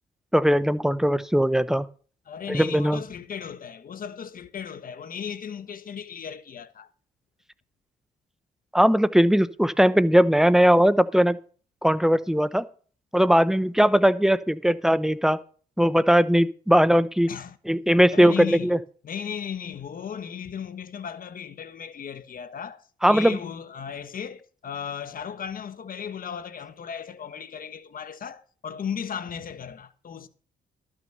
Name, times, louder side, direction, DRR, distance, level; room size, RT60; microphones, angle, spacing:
voice 1, 0.3-1.9 2.5-3.0 8.7-11.4 11.8-12.6 13.1-15.4 15.8-17.3 17.7-18.8 23.0-23.4, equal, ahead, 0.7 m, -19 dB
voice 2, 2.3-6.9 17.3-17.6 18.1-18.7 19.0-30.3, left 7 dB, 50° left, 1.3 m, -36 dB
12.5 x 6.2 x 6.7 m
cardioid pair, 85°, 18 cm